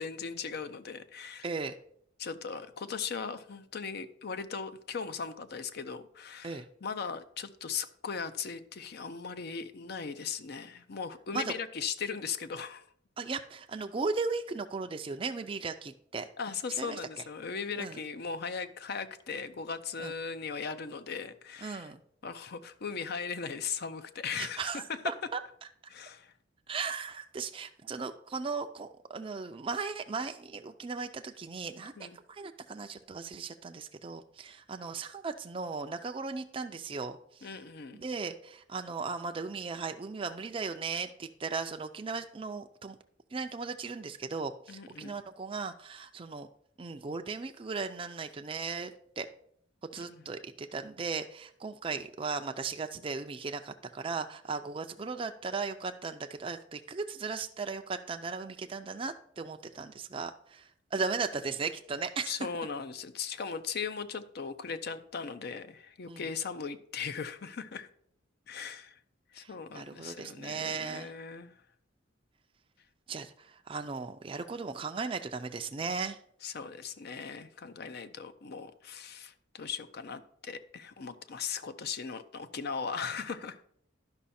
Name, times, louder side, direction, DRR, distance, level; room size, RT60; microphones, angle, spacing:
voice 1, 0.0-1.5 2.2-12.8 16.4-21.9 22.2-24.7 25.9-26.3 32.0-32.2 37.4-38.0 44.7-45.1 50.0-50.2 62.3-67.9 68.5-69.0 69.3-71.6 76.4-83.6, left 6 dB, 55° left, 0.6 m, -38 dB
voice 2, 1.4-1.8 6.4-6.7 11.3-11.6 13.2-16.3 16.8-17.0 17.8-18.0 20.0-20.1 21.6-22.0 24.4-25.4 26.7-37.6 37.9-43.0 43.3-46.5 46.8-49.3 49.9-62.4 66.1-66.3 69.4-71.1 73.1-76.2, right 4 dB, 30° right, 0.4 m, -37 dB
11.5 x 5.5 x 4.2 m
head